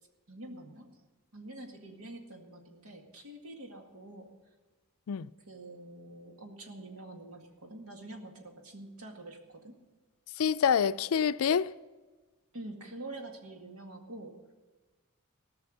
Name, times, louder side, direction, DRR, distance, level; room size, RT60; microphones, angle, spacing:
voice 1, 0.3-1.0 1.3-4.3 5.5-9.8 12.5-14.4, right 2 dB, 90° right, 2.0 m, -46 dB
voice 2, 10.4-11.7, left 7 dB, 80° left, 0.4 m, -26 dB
17.5 x 6.3 x 7.8 m
head